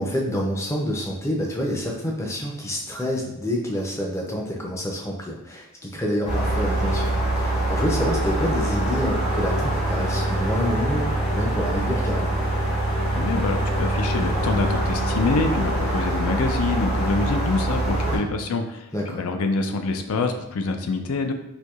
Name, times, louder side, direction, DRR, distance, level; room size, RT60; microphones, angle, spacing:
voice 1, 0.0-12.4 18.0-18.2 18.9-19.2, equal, 10° left, -1 dB, 0.5 m, -28 dB
sound 1, 6.2-18.2, right 1 dB, 90° left, 1.4 m, -24 dB
voice 2, 13.1-21.3, left 3 dB, 75° left, 6 dB, 0.4 m, -26 dB
4.4 x 2.7 x 2.3 m, 0.86 s
head